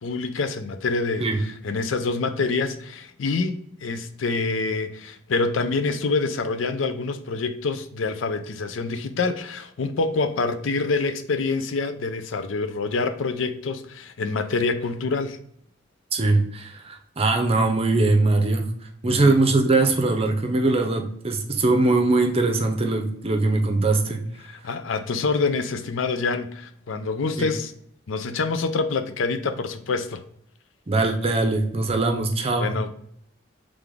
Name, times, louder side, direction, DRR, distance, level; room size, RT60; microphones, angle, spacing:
voice 1, 0.0-15.4 19.0-19.4 24.6-27.7 28.1-30.2 32.5-32.9, left 4 dB, 85° left, 0.5 m, -26 dB
voice 2, 16.1-18.7 19.0-24.2 27.4-27.5 30.9-32.7, right 2 dB, 30° right, 0.6 m, -21 dB
3.8 x 3.4 x 3.4 m
head